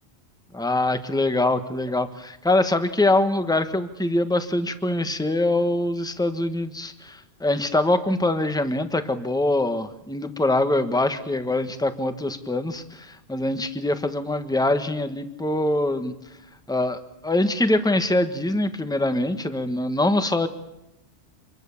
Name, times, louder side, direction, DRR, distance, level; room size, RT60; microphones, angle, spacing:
voice 1, 0.5-16.1 16.7-20.5, left 2 dB, 5° left, 9 dB, 1.4 m, -23 dB
27.0 x 23.0 x 7.2 m, 0.87 s
omnidirectional pair, 1.2 m